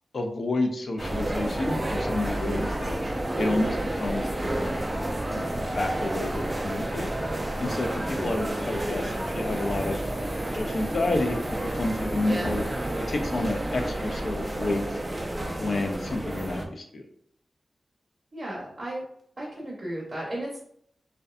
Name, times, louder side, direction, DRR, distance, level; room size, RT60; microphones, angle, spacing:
voice 1, 0.1-3.0 3.4-4.8 5.3-10.0 10.5-11.4 11.7-12.7 13.1-15.0 15.6-17.0, left 2 dB, 60° left, 5 dB, 0.4 m, -30 dB
sound 1, 1.0-16.7, right 1 dB, 20° right, 0.3 m, -30 dB
voice 2, 18.3-19.0 19.4-20.6, right 1 dB, 40° right, -4 dB, 0.7 m, -34 dB
2.6 x 2.1 x 2.4 m, 0.68 s
wide cardioid pair, 80°, 0 cm